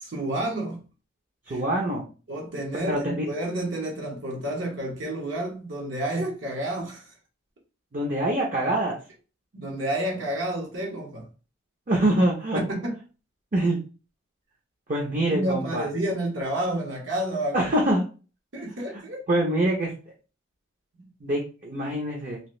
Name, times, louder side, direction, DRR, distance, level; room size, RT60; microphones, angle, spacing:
voice 1, 0.0-0.8 1.5-1.6 2.3-7.2 9.5-11.3 12.5-13.0 15.3-17.7 18.5-19.2 21.0-21.1, right 1 dB, 65° right, 0.9 m, -30 dB
voice 2, 1.5-2.0 2.7-3.3 7.9-9.0 11.9-12.6 13.5-13.8 14.9-15.9 17.5-18.0 19.3-19.9 21.2-22.4, right 1 dB, 40° right, 0.6 m, -24 dB
2.9 x 2.4 x 3.0 m
head